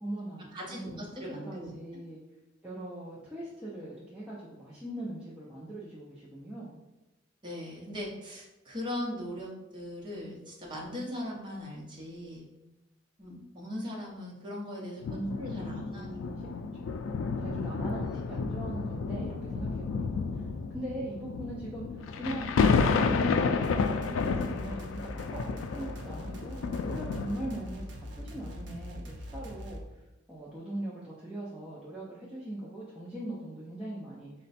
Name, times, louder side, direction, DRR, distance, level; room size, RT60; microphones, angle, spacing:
voice 1, 0.0-2.2 2.6-6.8 15.1-16.5 16.8-21.8 22.1-29.8 30.3-34.3, right 1 dB, 5° right, -8 dB, 0.5 m, -40 dB
voice 2, 0.5-1.7 7.4-12.4 13.2-15.0 15.4-16.2, left 1 dB, 25° right, -4 dB, 0.8 m, -39 dB
sound 1, 15.0-27.8 28.5-28.6, left 5 dB, 85° left, 0.3 m, -31 dB
sound 2, 23.6-29.8, equal, 65° right, 0.6 m, -42 dB
4.2 x 2.2 x 4.0 m, 0.97 s
head